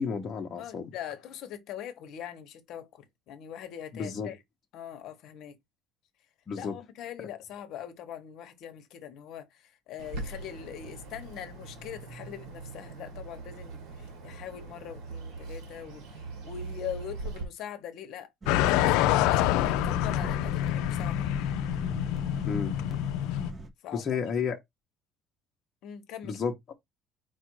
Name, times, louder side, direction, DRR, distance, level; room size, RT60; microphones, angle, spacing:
voice 1, 0.0-0.9 3.9-4.3 6.5-6.7 22.5-22.7 23.9-24.6 26.2-26.7, left 6 dB, 30° left, 0.7 m, -32 dB
voice 2, 0.6-4.4 4.7-5.6 6.5-21.2 23.8-24.0 25.8-26.4, left 10 dB, 55° left, 0.8 m, -42 dB
Bird, 10.0-17.4, right 3 dB, 80° right, 1.6 m, -41 dB
sound 1, 18.4-23.7, right 3 dB, 20° right, 0.5 m, -38 dB
sound 2, 18.5-23.5, left 15 dB, 80° left, 0.3 m, -27 dB
4.6 x 2.4 x 4.5 m
cardioid pair, 165°, 0 cm